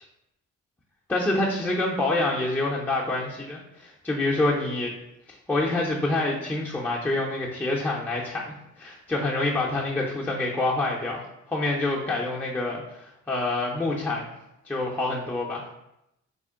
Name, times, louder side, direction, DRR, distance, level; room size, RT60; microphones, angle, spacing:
voice 1, 1.1-4.9 5.3-11.2 11.5-14.3 14.7-15.7, left 2 dB, 5° left, -4 dB, 0.4 m, -27 dB
3.6 x 2.1 x 3.5 m, 0.85 s
cardioid pair, 90°, 30 cm